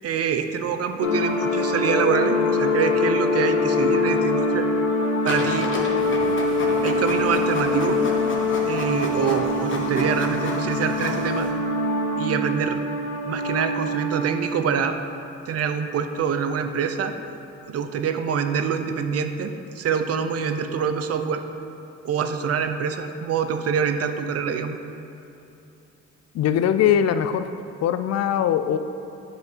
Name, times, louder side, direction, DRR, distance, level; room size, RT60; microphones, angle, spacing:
voice 1, 0.0-4.7 5.2-5.7 6.8-8.0 8.7-11.5 12.2-12.8 13.3-15.0 15.5-17.1 17.7-21.4 22.0-24.8, right 7 dB, 55° right, 8 dB, 0.6 m, -25 dB
sound 1, 1.0-14.6, left 2 dB, 85° left, 1.3 m, -24 dB
Printer, 5.3-11.5, left 1 dB, 40° left, 1.2 m, -32 dB
voice 2, 26.3-27.5 27.8-28.8, left 9 dB, 60° left, 10 dB, 0.4 m, -21 dB
8.4 x 5.1 x 4.5 m, 2.8 s
cardioid pair, 90°, 30 cm